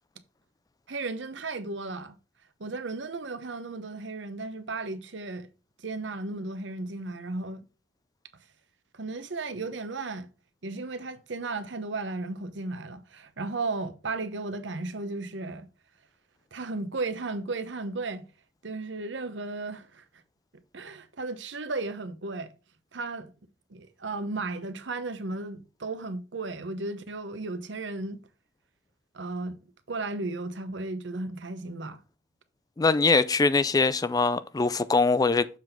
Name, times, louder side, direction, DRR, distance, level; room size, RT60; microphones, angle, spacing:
voice 1, 0.9-2.2 2.6-5.5 5.8-7.6 8.9-10.3 10.6-15.7 16.5-18.2 18.6-20.0 20.7-22.5 22.9-23.3 23.7-28.2 29.1-29.6 29.9-32.0, right 3 dB, 85° right, 0.9 m, -35 dB
voice 2, 32.8-35.5, left 4 dB, 20° left, 0.3 m, -22 dB
7.2 x 4.0 x 4.3 m
head